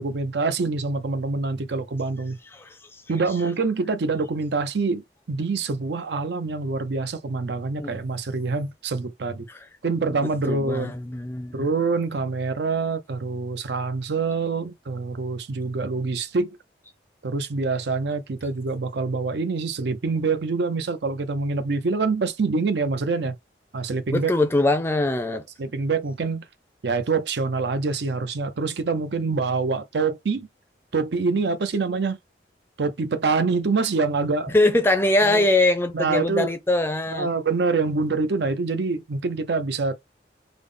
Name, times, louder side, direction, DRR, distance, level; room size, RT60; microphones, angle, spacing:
voice 1, 0.0-2.4 3.1-9.5 9.8-10.9 11.5-16.5 17.2-23.3 23.7-24.3 25.6-26.5 26.8-30.5 30.9-32.2 32.8-34.5 35.2-35.5 35.9-36.5 37.1-40.0, right 4 dB, 75° right, 0.5 m, -25 dB
voice 2, 2.5-3.0 7.8-7.9 9.5-9.6 10.2-11.7 24.1-25.4 34.5-37.3, left 2 dB, 15° left, 0.4 m, -22 dB
3.4 x 2.0 x 3.7 m
head